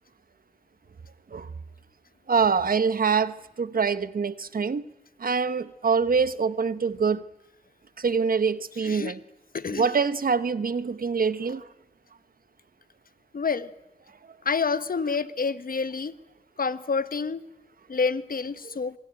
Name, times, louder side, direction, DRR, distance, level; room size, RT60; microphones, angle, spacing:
voice 1, 2.3-4.8 5.2-7.2 8.0-9.2 9.7-11.6, right 5 dB, 85° right, 1.0 m, -25 dB
voice 2, 8.8-9.1 9.5-9.9 13.3-13.7 14.4-16.1 16.6-17.4 17.9-18.9, left 5 dB, 80° left, 1.2 m, -28 dB
27.0 x 23.0 x 8.9 m
wide cardioid pair, 55°, 14 cm